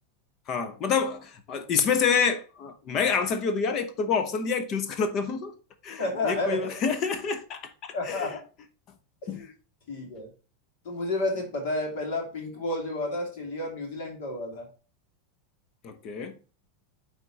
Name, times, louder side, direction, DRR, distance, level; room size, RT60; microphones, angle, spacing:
voice 1, 0.5-5.5 5.8-8.3 9.3-9.5 15.8-16.3, left 6 dB, 40° left, 1.0 m, -28 dB
voice 2, 6.0-6.9 7.9-8.4 9.2-9.3 9.9-10.3 10.8-14.7, left 2 dB, 55° left, 2.8 m, -31 dB
9.4 x 3.7 x 4.1 m
figure-of-eight pair, 85°, 0 cm